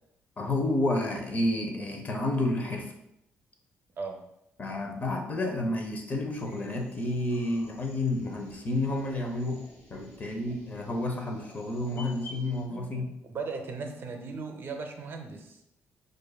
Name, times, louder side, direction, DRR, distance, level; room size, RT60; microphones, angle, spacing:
voice 1, 0.4-2.9 4.6-9.6 9.9-13.1, left 1 dB, 35° left, 3 dB, 0.7 m, -30 dB
sound 1, 6.3-12.6, left 1 dB, 60° left, 1.4 m, -51 dB
voice 2, 12.7-15.6, right 4 dB, 50° right, 5 dB, 0.6 m, -38 dB
6.2 x 2.5 x 2.3 m, 0.81 s
cardioid pair, 90°, 5 cm